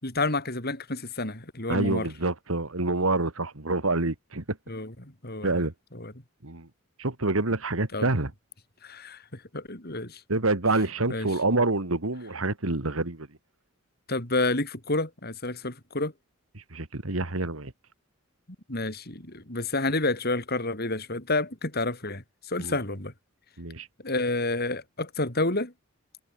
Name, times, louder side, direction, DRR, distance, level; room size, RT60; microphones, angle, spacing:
voice 1, 0.0-2.1 4.7-5.6 5.9-6.1 7.9-8.1 8.8-10.2 11.1-11.3 14.1-16.1 18.7-23.1 24.0-25.7, left 2 dB, 50° left, 5.3 m, -29 dB
voice 2, 1.7-4.6 5.4-5.7 6.4-6.7 7.0-8.3 10.3-13.3 16.7-17.7 22.6-22.8 23.6-23.9, right 2 dB, 85° right, 2.4 m, -27 dB
head